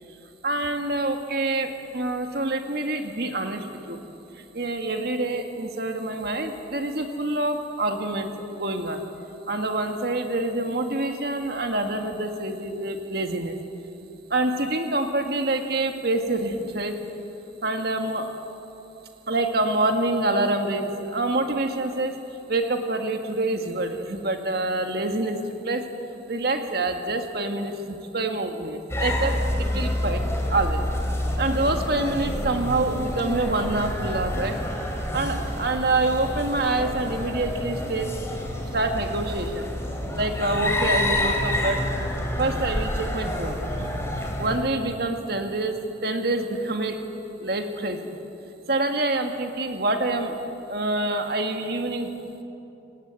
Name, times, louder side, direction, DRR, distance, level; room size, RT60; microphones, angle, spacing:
voice 1, 0.4-4.0 4.5-9.0 9.5-13.6 14.3-17.0 17.6-18.3 19.3-22.2 22.5-25.4 25.6-25.9 26.3-30.2 30.5-30.8 31.4-34.6 35.1-38.1 38.7-39.7 40.2-41.8 42.4-43.9 44.4-47.0 47.4-48.1 48.7-50.4 50.6-52.1, right 2 dB, 55° right, 5 dB, 1.9 m, -26 dB
sound 1, 28.9-44.6, left 1 dB, 15° left, 2.8 m, -28 dB
26.0 x 19.0 x 8.4 m, 2.9 s
head